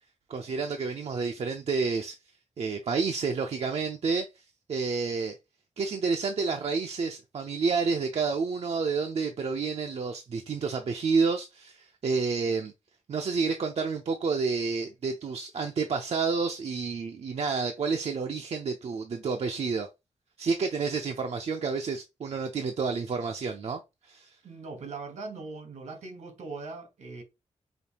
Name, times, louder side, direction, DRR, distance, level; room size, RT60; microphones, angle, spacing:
voice 1, 0.3-2.1 2.6-4.3 4.7-5.4 5.8-12.7 13.1-19.9 20.4-24.3, right 4 dB, 60° right, 0.5 m, -29 dB
voice 2, 24.4-27.2, right 3 dB, 80° right, 1.2 m, -40 dB
5.1 x 2.4 x 2.9 m
wide cardioid pair, 95°, 12 cm